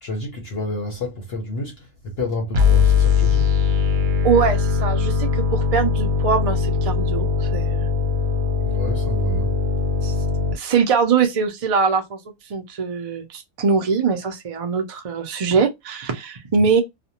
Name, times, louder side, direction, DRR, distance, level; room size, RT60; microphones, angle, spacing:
voice 1, 0.0-3.5 8.6-9.6, left 1 dB, 55° left, 0.7 m, -29 dB
sound 1, 2.5-10.5, left 6 dB, 85° right, 1.2 m, -20 dB
voice 2, 4.2-7.9 10.0-10.1 10.5-12.2 12.5-16.8, right 5 dB, 60° right, 0.3 m, -22 dB
2.5 x 2.1 x 2.8 m
omnidirectional pair, 1.5 m